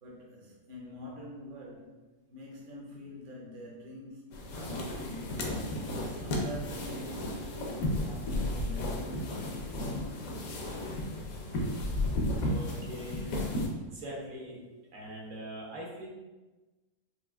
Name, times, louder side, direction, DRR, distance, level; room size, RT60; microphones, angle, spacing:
voice 1, 0.0-2.0 2.3-5.4 6.0-9.6, left 1 dB, 50° right, -3 dB, 0.7 m, -45 dB
sound 1, 4.3-13.7, left 1 dB, 75° left, 1.1 m, -33 dB
voice 2, 12.4-13.3 13.9-14.6 14.9-16.1, equal, 65° right, -4 dB, 1.2 m, -42 dB
4.6 x 2.4 x 2.3 m, 1.1 s
omnidirectional pair, 1.6 m